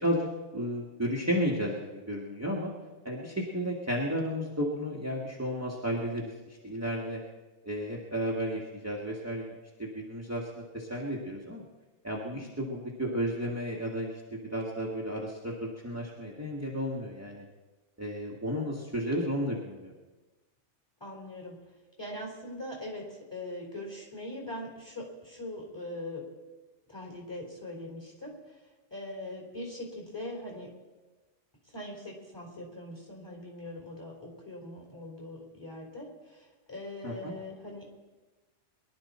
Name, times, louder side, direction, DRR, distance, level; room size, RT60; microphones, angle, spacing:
voice 1, 0.5-2.7 3.0-6.3 6.6-7.2 7.6-9.5 9.8-11.6 12.0-17.4 18.0-19.9 37.0-37.3, equal, 10° right, -3 dB, 1.6 m, -33 dB
voice 2, 21.0-21.6 22.0-26.3 26.9-28.6 28.9-30.7 31.7-38.0, left 1 dB, 20° left, -1 dB, 4.1 m, -41 dB
23.0 x 11.5 x 4.3 m, 1.2 s
omnidirectional pair, 1.2 m